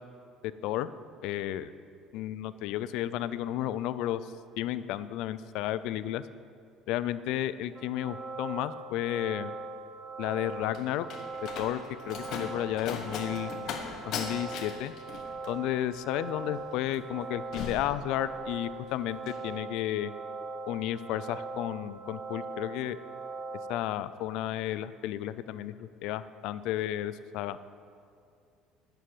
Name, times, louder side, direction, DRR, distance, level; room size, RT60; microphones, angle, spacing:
voice 1, 1.2-1.7 2.1-4.2 4.6-6.2 6.9-9.5 10.2-11.1 11.6-11.8 12.1-13.5 14.0-14.9 15.4-20.1 20.7-23.0 23.7-27.6, left 12 dB, 75° left, 15 dB, 0.4 m, -32 dB
sound 1, 7.7-23.8, right 3 dB, 25° right, 0.8 m, -41 dB
Slam, 10.2-18.7 19.0-19.5, left 6 dB, 60° left, 1.1 m, -40 dB
11.0 x 6.9 x 7.5 m, 2.4 s
cardioid pair, 135°, 0 cm